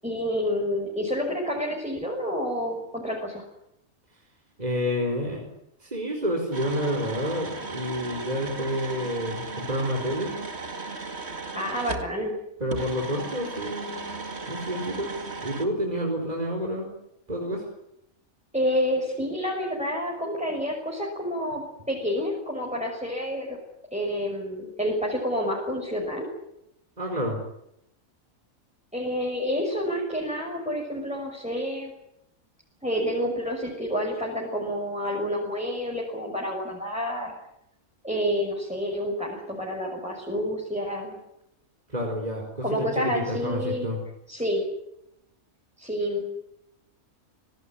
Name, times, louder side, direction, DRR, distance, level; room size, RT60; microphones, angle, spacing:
voice 1, 0.0-3.4 11.5-12.3 18.5-21.6 21.9-23.6 23.9-26.3 28.9-31.9 32.8-37.3 38.0-41.2 42.6-43.9 44.3-44.6 45.8-46.3, equal, 5° right, -2 dB, 6.4 m, -29 dB
voice 2, 4.6-5.5 5.8-10.3 12.6-14.1 14.5-15.1 15.4-16.9 17.3-17.6 27.0-27.4 41.9-44.0, equal, 30° right, 1 dB, 4.6 m, -29 dB
sound 1, 6.5-12.1 12.7-15.6, right 3 dB, 50° right, 2.6 m, -36 dB
26.0 x 19.0 x 10.0 m, 0.80 s
omnidirectional pair, 1.4 m